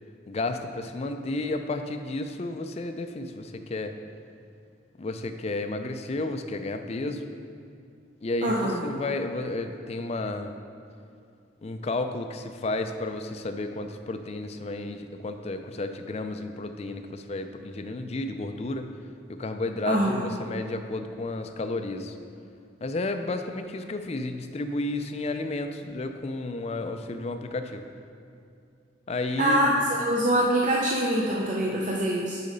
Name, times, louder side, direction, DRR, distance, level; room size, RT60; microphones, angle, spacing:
voice 1, 0.3-3.9 5.0-7.3 8.2-10.6 11.6-18.9 19.3-22.1 22.8-27.8 29.1-29.9, left 2 dB, 35° left, 7 dB, 0.4 m, -32 dB
voice 2, 8.4-8.8 19.9-20.2 29.4-32.4, right 1 dB, 40° right, -3 dB, 0.5 m, -24 dB
6.7 x 5.0 x 5.3 m, 2.5 s
head